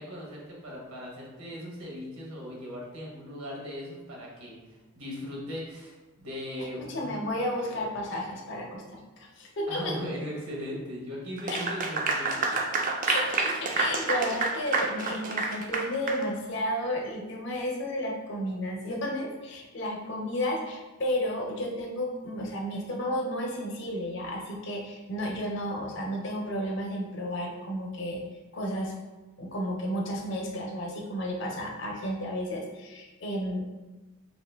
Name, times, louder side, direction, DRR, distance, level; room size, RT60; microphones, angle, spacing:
voice 1, 0.0-4.6 5.0-7.2 7.6-7.9 9.7-12.5, equal, 85° right, -3 dB, 1.1 m, -38 dB
voice 2, 6.9-10.0 11.5-11.6 13.0-28.2 28.5-28.9 29.4-33.6, equal, 55° left, 0 dB, 0.6 m, -32 dB
Clapping / Applause, 11.4-16.2, right 3 dB, 35° right, 0.3 m, -28 dB
3.1 x 2.7 x 3.3 m, 1.2 s
head